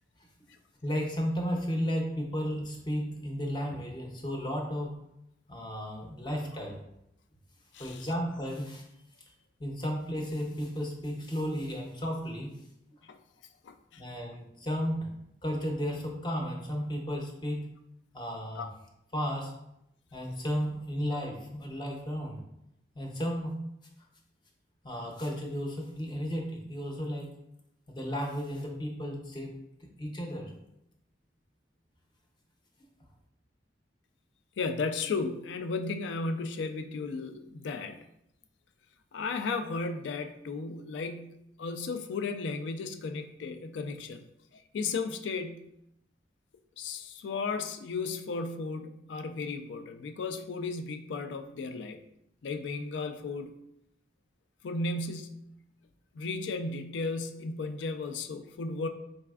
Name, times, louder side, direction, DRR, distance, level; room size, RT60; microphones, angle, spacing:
voice 1, 0.8-4.9 5.5-6.8 7.8-8.8 9.6-12.5 14.0-15.1 15.4-17.6 18.1-18.7 19.1-19.5 20.1-22.4 22.9-23.5 24.8-27.3 27.9-29.5 29.8-30.5, equal, 25° left, 1 dB, 0.6 m, -33 dB
voice 2, 7.7-8.1 13.1-13.2 13.6-14.0 18.6-18.7 34.6-38.0 39.1-44.2 44.5-45.7 46.8-52.0 52.4-53.5 54.6-55.5 56.1-58.9, left 4 dB, 75° left, 8 dB, 0.4 m, -35 dB
4.0 x 3.3 x 2.3 m, 0.81 s
head